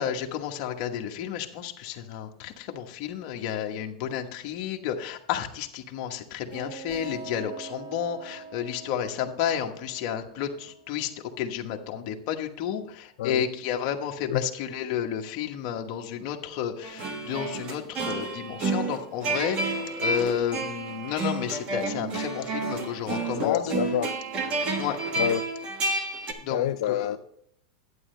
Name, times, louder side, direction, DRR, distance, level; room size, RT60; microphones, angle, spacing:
voice 1, 0.0-23.7 24.7-25.0 26.4-27.2, left 9 dB, 45° left, 1.2 m, -31 dB
sound 1, 6.5-11.9, right 4 dB, 60° right, 3.5 m, -44 dB
sound 2, 16.8-26.3, right 3 dB, 30° right, 1.3 m, -30 dB
voice 2, 23.4-24.1 25.2-25.5 26.5-27.2, left 12 dB, 75° left, 0.4 m, -27 dB
11.0 x 9.1 x 3.3 m
supercardioid pair, 155°, 4 cm